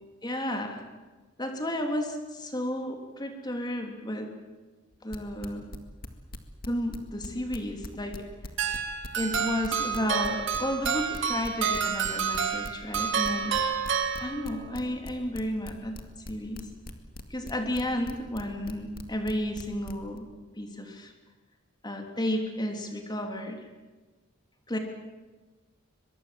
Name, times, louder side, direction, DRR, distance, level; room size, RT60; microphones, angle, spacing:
voice 1, 0.2-0.8 1.4-4.4 5.0-5.7 6.7-8.2 9.1-13.5 14.2-16.0 16.3-16.7 17.3-20.3 20.6-21.1 21.8-23.6 24.7-24.8, left 1 dB, 20° left, 3 dB, 3.2 m, -32 dB
sound 1, 4.9-7.3 7.5-20.2, left 1 dB, 50° left, 2.1 m, -41 dB
sound 2, 8.6-14.7, right 7 dB, 65° right, 2.5 m, -29 dB
23.0 x 22.5 x 7.7 m, 1.3 s
head